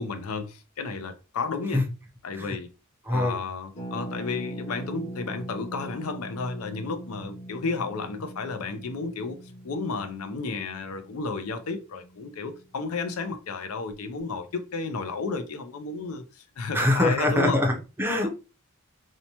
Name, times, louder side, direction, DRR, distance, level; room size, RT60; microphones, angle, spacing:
voice 1, 0.0-1.8 2.2-2.7 3.1-9.4 9.6-17.6 18.2-18.3, left 4 dB, 85° left, 0.5 m, -32 dB
voice 2, 3.0-3.4 16.7-18.3, left 1 dB, 10° right, 0.5 m, -24 dB
Harp, 3.7-13.4 13.6-13.7 13.9-14.2, equal, 30° left, 0.6 m, -41 dB
2.7 x 2.1 x 2.8 m
head